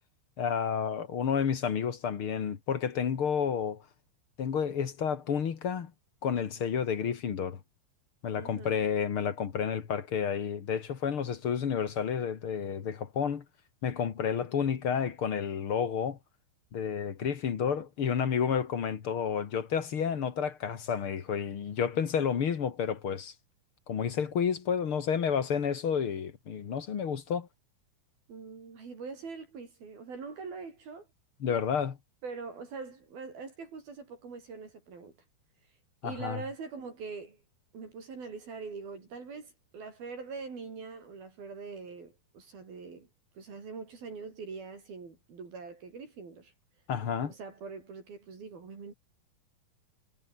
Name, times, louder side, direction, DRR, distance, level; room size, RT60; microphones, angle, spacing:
voice 1, 0.4-3.8 4.4-5.9 6.2-7.6 8.2-13.4 13.8-16.2 16.7-23.3 23.9-27.5 31.4-32.0 36.0-36.4 46.9-47.3, left 7 dB, 50° left, 1.7 m, -30 dB
voice 2, 8.4-8.8 28.3-31.1 32.2-35.1 36.0-37.4 37.7-43.1 43.3-46.5 47.2-48.9, right 4 dB, 55° right, 6.8 m, -43 dB
omnidirectional pair, 5.1 m